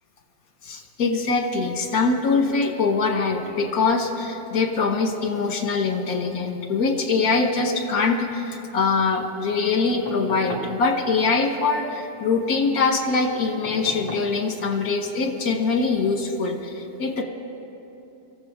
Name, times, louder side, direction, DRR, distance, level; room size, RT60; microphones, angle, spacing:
voice 1, 0.6-17.2, left 4 dB, 70° left, 3 dB, 1.8 m, -23 dB
sound 1, 10.1-10.8 13.6-14.3 16.0-16.1, left 1 dB, 20° left, 2.3 m, -35 dB
25.0 x 14.5 x 3.7 m, 2.8 s
omnidirectional pair, 1.6 m